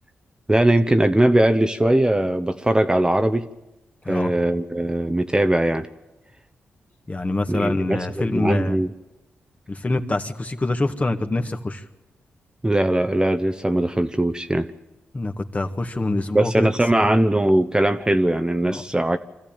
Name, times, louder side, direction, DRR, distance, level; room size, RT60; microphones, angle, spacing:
voice 1, 0.5-3.5 4.1-5.9 7.5-8.9 12.6-14.7 16.3-19.2, right 1 dB, 15° right, 8 dB, 1.1 m, -20 dB
voice 2, 7.1-8.8 9.7-11.9 15.1-16.7 17.0-17.1 18.6-18.8, left 2 dB, 30° left, 6 dB, 1.8 m, -25 dB
25.0 x 14.5 x 9.0 m, 1.0 s
supercardioid pair, 45°, 5 cm